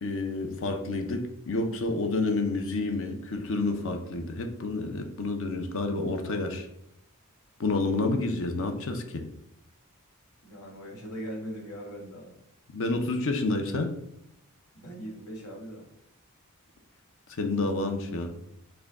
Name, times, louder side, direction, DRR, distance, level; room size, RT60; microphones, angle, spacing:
voice 1, 0.0-6.7 7.6-9.2 12.7-13.9 17.4-18.3, left 2 dB, 60° left, 5 dB, 0.6 m, -29 dB
voice 2, 10.4-12.4 14.7-15.9, equal, 80° left, -1 dB, 1.4 m, -40 dB
6.1 x 2.2 x 3.5 m, 0.81 s
head